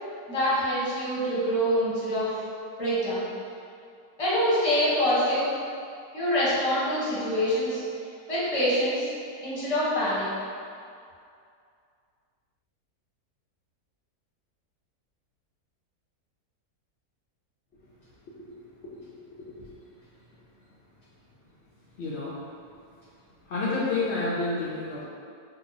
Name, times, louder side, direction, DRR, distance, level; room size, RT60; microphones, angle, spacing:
voice 1, 0.3-2.4 2.8-3.3 4.2-5.5 6.1-7.8 8.3-9.1 9.4-10.3, equal, 30° left, -9 dB, 0.7 m, -25 dB
voice 2, 19.4-19.7 22.0-22.4 23.4-25.0, left 3 dB, 85° left, -7 dB, 0.5 m, -30 dB
2.8 x 2.2 x 3.9 m, 2.4 s
omnidirectional pair, 1.7 m